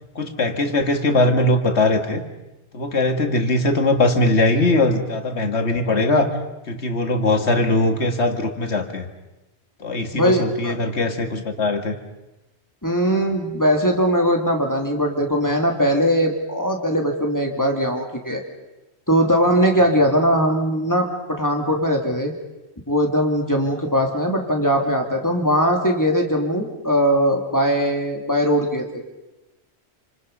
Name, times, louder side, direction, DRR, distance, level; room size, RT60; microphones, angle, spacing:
voice 1, 0.2-2.2 2.7-6.3 6.7-9.1 9.8-12.0, left 2 dB, 75° left, 6 dB, 2.3 m, -20 dB
voice 2, 10.1-10.7 12.8-18.4 19.1-22.3 22.9-29.0, equal, 15° left, 1 dB, 2.9 m, -20 dB
28.5 x 26.5 x 5.5 m, 1.0 s
omnidirectional pair, 1.1 m